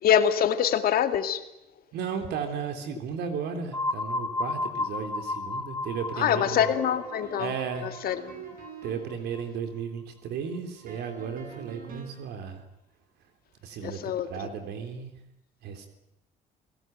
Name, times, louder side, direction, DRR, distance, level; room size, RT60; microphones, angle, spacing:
voice 1, 0.0-1.4 6.2-7.5 7.8-8.2 13.8-14.5, left 9 dB, 60° left, 8 dB, 2.4 m, -25 dB
voice 2, 1.9-6.7 7.4-7.9 8.8-12.6 13.6-15.1 15.6-15.9, right 6 dB, 75° right, 6 dB, 3.5 m, -34 dB
sound 1, 3.7-9.4, left 2 dB, 15° left, 2.4 m, -33 dB
sound 2, 6.2-9.2 10.9-12.3, right 4 dB, 55° right, 7.6 m, -45 dB
29.0 x 18.0 x 9.2 m, 0.87 s
cardioid pair, 110°, 17 cm